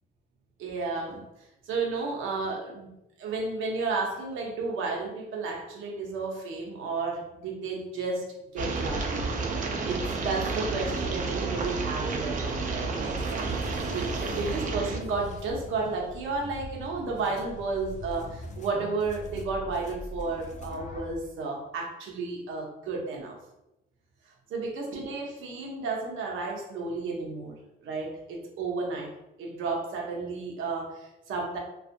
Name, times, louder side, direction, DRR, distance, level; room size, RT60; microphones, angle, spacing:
voice 1, 0.6-1.2 1.7-2.9 3.2-8.3 8.5-9.2 9.8-13.5 13.9-23.4 24.5-27.6 27.8-29.1 29.4-31.6, right 3 dB, 80° right, 0 dB, 0.7 m, -32 dB
sound 1, 8.6-15.0, right 3 dB, 40° right, 0.5 m, -31 dB
sound 2, 13.2-21.2, left 1 dB, 35° left, 0.5 m, -42 dB
2.5 x 2.3 x 2.5 m, 0.92 s
cardioid pair, 90°, 20 cm